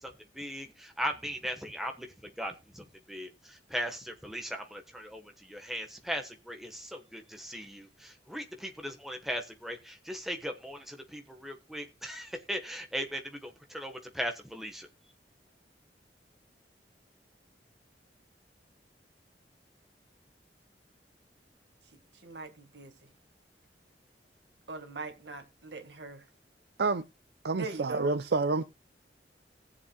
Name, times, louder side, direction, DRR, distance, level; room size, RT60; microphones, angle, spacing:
voice 1, 0.0-14.9, equal, ahead, 1.2 m, -38 dB
voice 2, 22.2-22.9 24.7-26.2 27.5-28.1, right 3 dB, 80° right, 1.8 m, -41 dB
voice 3, 27.4-28.6, right 3 dB, 65° right, 0.5 m, -28 dB
19.5 x 7.3 x 2.3 m
head